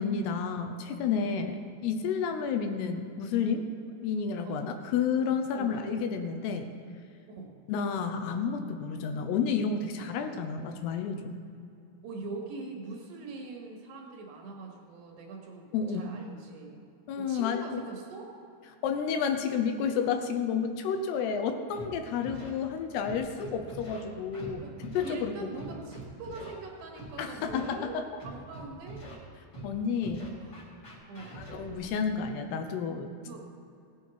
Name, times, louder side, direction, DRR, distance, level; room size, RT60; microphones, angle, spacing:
voice 1, 0.0-3.7 4.0-6.7 7.7-11.4 15.7-16.1 17.1-17.8 18.8-25.5 27.2-28.1 29.6-30.3 31.4-33.1, left 6 dB, 80° left, 6 dB, 2.8 m, -31 dB
voice 2, 5.5-6.0 7.4-7.6 12.0-16.8 17.2-18.3 24.6-24.8 25.0-29.0 30.4-30.7 31.1-31.4 33.2-33.5, right 3 dB, 80° right, 0 dB, 3.8 m, -42 dB
Scratching (performance technique), 21.7-21.8 22.2-22.5 23.0-24.0 24.3-24.5 24.8-25.1 25.6-26.5 26.9-27.1 27.5-27.7 28.2-29.1 29.5-29.7 30.0-31.9, right 1 dB, 30° left, 2.2 m, -44 dB
17.5 x 8.4 x 4.6 m, 2.6 s
omnidirectional pair, 4.9 m